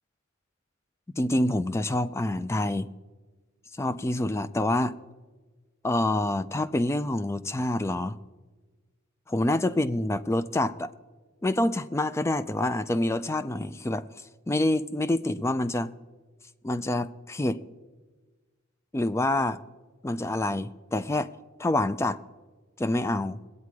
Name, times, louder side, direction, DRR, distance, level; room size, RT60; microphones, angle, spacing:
voice 1, 1.2-2.9 3.8-5.0 5.8-8.2 9.3-10.9 11.4-14.0 14.5-15.9 16.6-17.6 18.9-19.6 20.0-21.3 21.6-22.2 22.8-23.4, left 1 dB, 15° left, 0.3 m, -27 dB
21.0 x 8.4 x 4.8 m
head